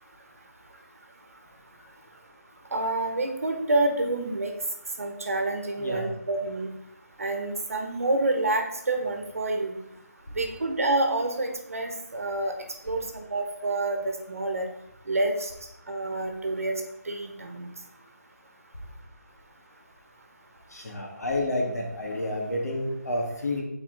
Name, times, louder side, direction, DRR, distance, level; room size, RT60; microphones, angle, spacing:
voice 1, 2.7-4.5 5.0-6.7 7.2-9.8 10.4-12.5 12.8-14.7 15.1-15.5 15.9-17.7, right 2 dB, 55° right, 4 dB, 1.2 m, -28 dB
voice 2, 5.8-6.1 20.7-23.6, left 1 dB, 65° left, 0 dB, 1.9 m, -30 dB
6.9 x 4.3 x 3.9 m, 0.80 s
figure-of-eight pair, 175°, 9 cm